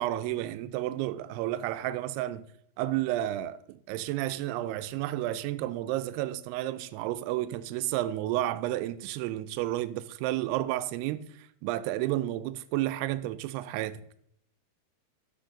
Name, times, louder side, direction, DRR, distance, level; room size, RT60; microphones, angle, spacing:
voice 1, 0.0-2.5 2.8-14.0, right 14 dB, 85° right, 2.5 m, -31 dB
13.0 x 5.2 x 3.7 m
omnidirectional pair, 4.6 m